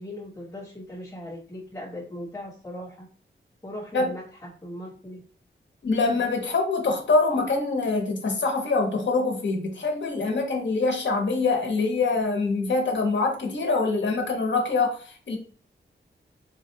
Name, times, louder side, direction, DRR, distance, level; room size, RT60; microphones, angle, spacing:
voice 1, 0.0-3.1 3.6-5.2, left 1 dB, 15° left, -9 dB, 1.0 m, -39 dB
voice 2, 5.8-15.4, left 3 dB, 65° left, 2 dB, 1.0 m, -24 dB
4.0 x 2.4 x 2.7 m, 0.44 s
wide cardioid pair, 120°, 20 cm